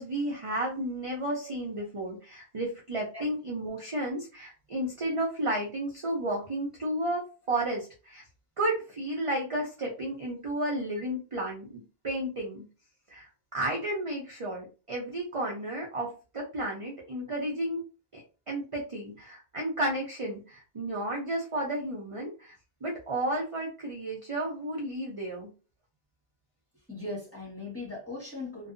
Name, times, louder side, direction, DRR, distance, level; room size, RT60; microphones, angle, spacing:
voice 1, 0.0-7.2 7.5-8.2 8.6-12.6 13.1-13.3 13.5-17.8 18.1-18.2 18.5-22.5 22.8-25.5, right 1 dB, 40° right, 0.6 m, -32 dB
voice 2, 26.9-28.7, left 2 dB, 15° left, 1.3 m, -39 dB
2.6 x 2.3 x 2.4 m
omnidirectional pair, 1.1 m